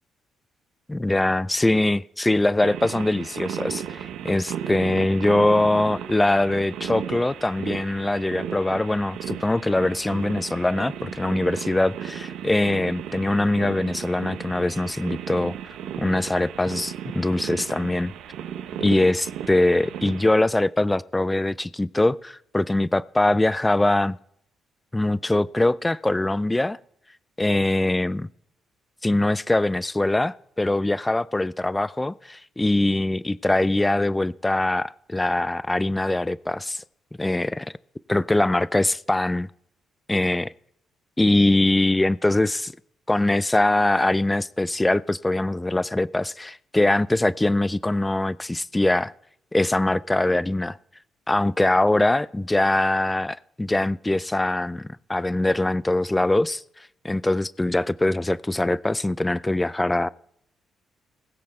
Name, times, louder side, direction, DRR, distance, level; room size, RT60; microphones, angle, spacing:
voice 1, 0.9-15.5 16.0-18.1 18.8-24.2 24.9-26.8 27.4-28.3 29.0-36.8 37.2-37.7 38.1-39.5 40.1-40.5 41.2-42.7 43.1-49.1 49.5-50.8 51.3-56.6 57.0-60.1, left 2 dB, 15° left, 0.4 m, -22 dB
sound 1, 2.6-20.3, right 9 dB, 85° right, 0.8 m, -35 dB
19.5 x 6.7 x 4.3 m
cardioid pair, 90°, 0 cm